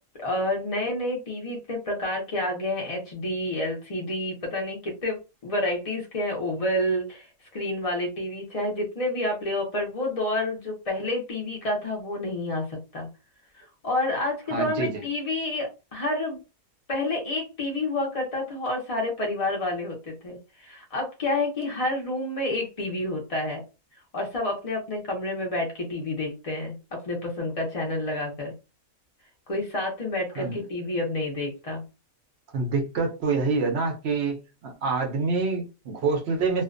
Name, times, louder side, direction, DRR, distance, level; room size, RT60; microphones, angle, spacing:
voice 1, 0.2-7.3 7.5-13.1 13.6-16.4 16.9-23.6 24.1-28.5 29.5-31.8, left 1 dB, 60° left, 0.3 m, -29 dB
voice 2, 14.5-15.0 30.4-30.6 32.5-36.6, right 4 dB, 65° right, 0.6 m, -26 dB
2.5 x 2.1 x 2.4 m
omnidirectional pair, 1.6 m